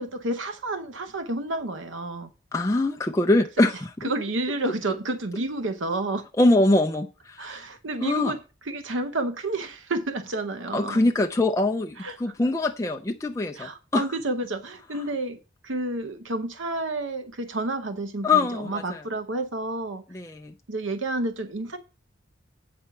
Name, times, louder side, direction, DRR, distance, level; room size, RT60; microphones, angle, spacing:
voice 1, 0.0-2.3 4.0-6.2 7.4-8.4 8.7-11.0 12.0-12.2 13.6-20.0 20.7-21.8, right 2 dB, 80° right, 0.9 m, -30 dB
voice 2, 2.5-4.1 6.4-7.7 8.0-8.3 10.7-14.0 18.2-19.0 20.1-20.5, left 2 dB, 15° left, 0.4 m, -23 dB
8.6 x 4.3 x 5.9 m
head